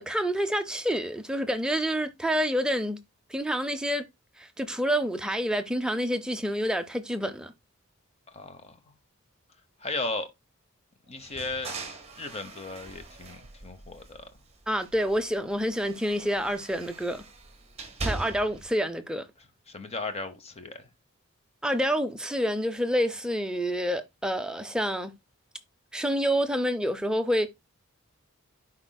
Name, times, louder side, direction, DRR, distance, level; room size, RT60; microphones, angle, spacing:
voice 1, 0.0-3.0 3.3-4.0 4.4-7.5 14.7-17.2 18.0-19.2 21.6-25.1 25.9-27.5, equal, 5° right, 0.5 m, -28 dB
voice 2, 8.3-8.8 9.8-10.3 11.1-11.7 12.2-14.2 19.7-20.9, left 3 dB, 30° left, 0.9 m, -35 dB
sound 1, 11.2-14.4 14.7-18.7, right 3 dB, 30° right, 1.5 m, -40 dB
10.5 x 4.4 x 2.2 m
head